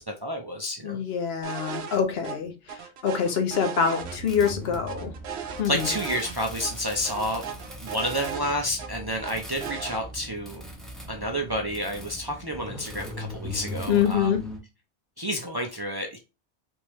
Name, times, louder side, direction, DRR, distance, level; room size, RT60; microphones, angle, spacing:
voice 1, 0.0-1.0 5.6-7.4 7.8-10.6 11.1-14.3 15.2-16.2, equal, 35° right, 0.4 m, -30 dB
voice 2, 0.8-2.5 3.0-5.1 5.6-5.9 13.9-14.4, left 7 dB, 75° left, 1.0 m, -25 dB
sound 1, 1.4-2.0 2.2-2.3 2.7-4.5 4.9-6.3 6.6-6.7 7.0-8.9 9.2-10.0, right 7 dB, 85° right, 0.9 m, -36 dB
sound 2, 4.0-14.6, left 1 dB, ahead, 0.8 m, -40 dB
3.5 x 3.1 x 3.0 m
omnidirectional pair, 1.0 m